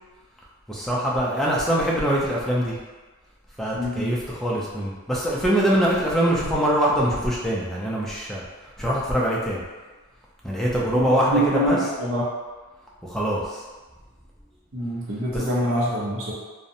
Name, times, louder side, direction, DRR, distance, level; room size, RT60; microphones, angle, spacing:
voice 1, 0.7-2.8 3.6-8.4 8.8-9.6 10.4-11.8 13.0-13.6 15.3-15.4, equal, ahead, -5 dB, 0.3 m, -23 dB
voice 2, 3.7-4.1 10.9-12.2 14.7-16.3, equal, 65° right, -6 dB, 0.5 m, -25 dB
2.7 x 2.0 x 2.5 m, 1.3 s
head